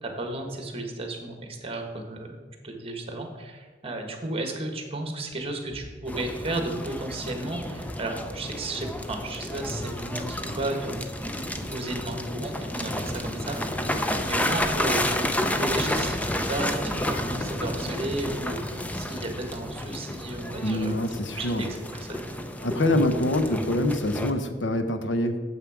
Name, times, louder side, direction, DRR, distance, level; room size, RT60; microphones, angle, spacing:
voice 1, 0.0-10.9 11.7-13.6 13.9-20.9 21.3-22.3, right 2 dB, 30° right, 4 dB, 1.4 m, -33 dB
sound 1, 5.7-14.6 15.0-15.3 15.7-16.0, equal, 35° left, 2.3 m, -46 dB
sound 2, 6.1-24.3, left 1 dB, 10° left, 0.6 m, -31 dB
voice 2, 20.6-21.7 22.6-25.4, left 1 dB, 80° left, 8 dB, 0.9 m, -25 dB
9.0 x 7.4 x 4.9 m, 1.4 s
head